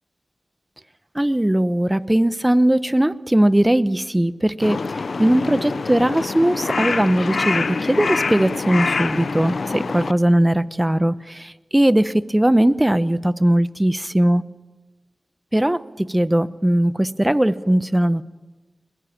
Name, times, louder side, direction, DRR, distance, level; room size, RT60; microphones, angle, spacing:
voice 1, 1.1-4.8 5.2-14.4 15.5-18.2, right 1 dB, 15° right, 15 dB, 1.0 m, -19 dB
Crow, 4.6-10.1, left 4 dB, 75° left, 0.8 m, -25 dB
21.5 x 21.0 x 8.8 m, 1.2 s
cardioid pair, 40°, 0 cm